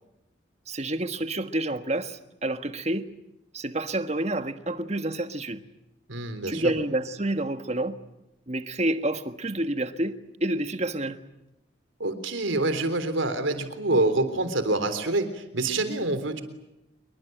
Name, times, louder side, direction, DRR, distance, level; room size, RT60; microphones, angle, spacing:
voice 1, 0.7-3.1 3.5-5.6 6.5-8.0 8.5-11.2, right 1 dB, 35° right, 1.4 m, -29 dB
voice 2, 6.1-6.7 12.0-16.4, right 2 dB, 85° right, 3.5 m, -26 dB
27.0 x 23.5 x 9.1 m
head